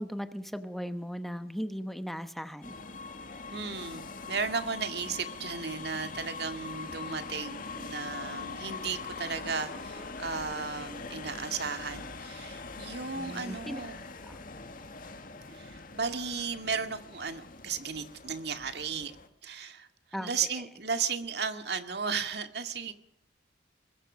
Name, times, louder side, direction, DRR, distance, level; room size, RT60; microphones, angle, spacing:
voice 1, 0.0-2.7 13.1-13.8 14.3-14.4 20.1-20.3, equal, ahead, 9 dB, 1.0 m, -37 dB
sound 1, 2.6-19.3, left 4 dB, 45° left, 2.0 m, -42 dB
voice 2, 3.5-14.0 15.5-19.1 19.4-19.9 20.2-22.9, right 5 dB, 60° right, 8 dB, 2.1 m, -35 dB
22.5 x 21.0 x 6.3 m, 0.75 s
head